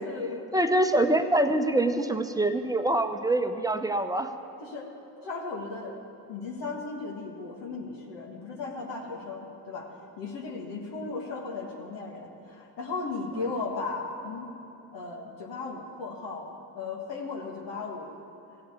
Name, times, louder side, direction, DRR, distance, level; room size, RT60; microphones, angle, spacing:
voice 1, 0.0-0.5 4.6-4.9 5.2-6.0 6.3-14.5 14.9-18.1, left 4 dB, 70° left, -1 dB, 1.8 m, -36 dB
voice 2, 0.5-4.3 11.0-11.1, right 1 dB, 10° right, 8 dB, 0.9 m, -25 dB
15.5 x 7.7 x 8.2 m, 2.7 s
hypercardioid pair, 55°, 44 cm